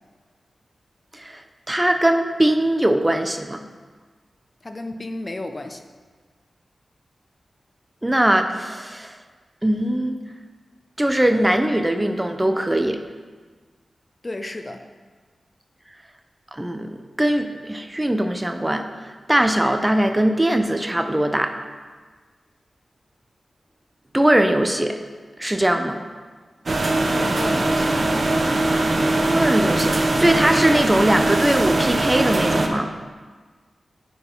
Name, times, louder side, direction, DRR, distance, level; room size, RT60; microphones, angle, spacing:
voice 1, 1.1-3.6 8.0-9.2 9.6-10.2 11.0-13.0 16.5-21.5 24.1-25.0 25.4-26.0 28.7-32.9, right 1 dB, 15° right, 6 dB, 0.7 m, -21 dB
voice 2, 4.6-5.9 14.2-14.9 27.1-28.0, left 2 dB, 40° left, 7 dB, 0.6 m, -33 dB
sound 1, 26.7-32.7, right 2 dB, 55° right, 0.8 m, -21 dB
9.6 x 4.7 x 5.3 m, 1.5 s
cardioid pair, 50°, 0 cm